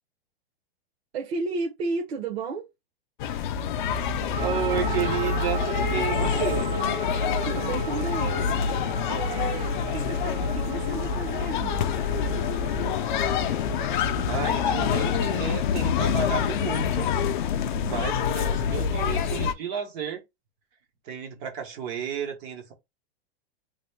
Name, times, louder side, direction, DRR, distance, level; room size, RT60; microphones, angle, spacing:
voice 1, 1.1-2.6 7.4-8.4 9.0-11.9 14.6-15.3 17.7-18.1, right 3 dB, 85° right, 1.1 m, -33 dB
sound 1, 3.2-19.5, left 7 dB, 55° left, 0.4 m, -26 dB
voice 2, 4.4-6.7 14.3-17.1 17.5-17.6 17.9-20.2 21.0-22.7, right 8 dB, 15° right, 0.3 m, -32 dB
sound 2, 4.4-15.4, right 8 dB, 50° right, 0.7 m, -37 dB
3.1 x 2.2 x 3.1 m
supercardioid pair, 165°, 30 cm